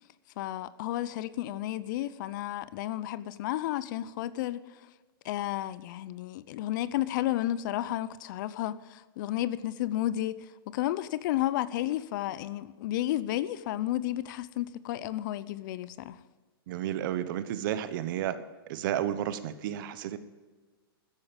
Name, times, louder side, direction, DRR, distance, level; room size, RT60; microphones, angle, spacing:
voice 1, 0.4-4.6 5.2-16.2, left 14 dB, 50° left, 0.7 m, -32 dB
voice 2, 16.7-18.4 18.7-20.2, right 11 dB, 55° right, 1.1 m, -32 dB
14.0 x 11.0 x 5.3 m
hypercardioid pair, 130°, 13 cm